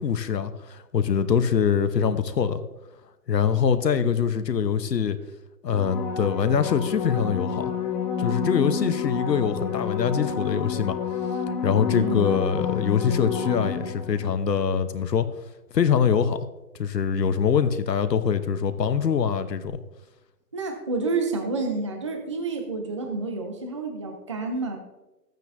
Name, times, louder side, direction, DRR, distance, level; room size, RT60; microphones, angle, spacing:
voice 1, 0.0-2.6 3.3-5.2 5.6-7.7 8.2-11.0 11.6-15.3 15.7-16.5 16.8-19.8, left 7 dB, 80° left, 1.1 m, -24 dB
sound 1, 5.7-14.3 19.7-19.8, left 6 dB, 25° left, 0.9 m, -29 dB
voice 2, 11.9-12.4 20.5-24.8, right 3 dB, 20° right, 0.5 m, -29 dB
13.5 x 9.1 x 2.6 m
hypercardioid pair, 150°, 49 cm